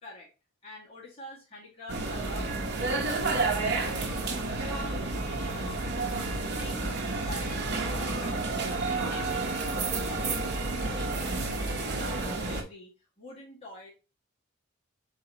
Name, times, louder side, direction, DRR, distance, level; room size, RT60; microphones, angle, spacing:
voice 1, 0.6-2.5 2.8-9.4 9.7-12.9 13.2-13.9, left 2 dB, 30° left, -6 dB, 1.7 m, -46 dB
sound 1, 1.9-12.6, right 3 dB, 55° right, 0.8 m, -30 dB
4.1 x 3.7 x 2.8 m, 0.31 s
head